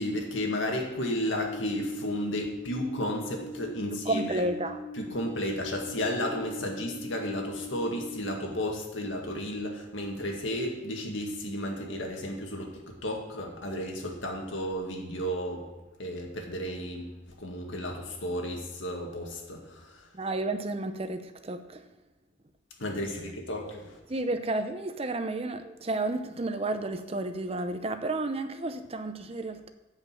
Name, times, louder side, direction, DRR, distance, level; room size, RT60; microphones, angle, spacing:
voice 1, 0.0-4.4 4.9-15.7 16.0-17.1 17.4-20.1 22.8-24.0, left 1 dB, 75° left, 1 dB, 2.0 m, -33 dB
sound 1, 1.8-8.2, left 1 dB, 60° left, 4.0 m, -41 dB
voice 2, 4.0-4.8 20.1-21.8 24.1-29.7, right 2 dB, 30° right, 9 dB, 0.7 m, -31 dB
10.0 x 5.3 x 7.8 m, 1.1 s
head